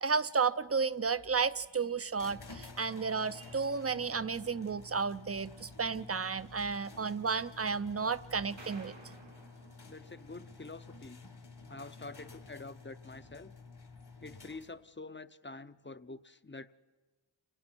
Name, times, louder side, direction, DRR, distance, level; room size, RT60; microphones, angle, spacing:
voice 1, 0.0-8.9, right 5 dB, 30° right, 15 dB, 0.6 m, -32 dB
sound 1, 2.2-14.9, left 4 dB, 60° left, 1.7 m, -52 dB
sound 2, 8.6-10.9, right 2 dB, 80° right, 3.6 m, -55 dB
voice 2, 9.9-11.2 11.7-13.5 14.2-16.7, left 3 dB, 25° left, 13 dB, 0.7 m, -47 dB
30.0 x 19.0 x 4.5 m, 1.3 s
wide cardioid pair, 60°, 46 cm